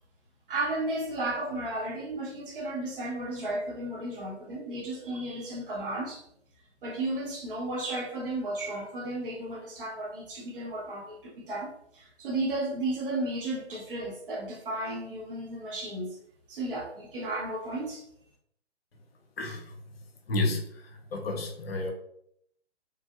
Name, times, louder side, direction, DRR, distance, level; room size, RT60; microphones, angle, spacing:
voice 1, 0.5-6.2 6.8-16.2 16.5-18.0, right 2 dB, 50° right, -2 dB, 0.9 m, -34 dB
voice 2, 20.3-20.6 21.1-21.9, left 2 dB, 60° left, 3 dB, 0.7 m, -29 dB
3.3 x 2.6 x 2.4 m, 0.71 s
figure-of-eight pair, 135°, 35 cm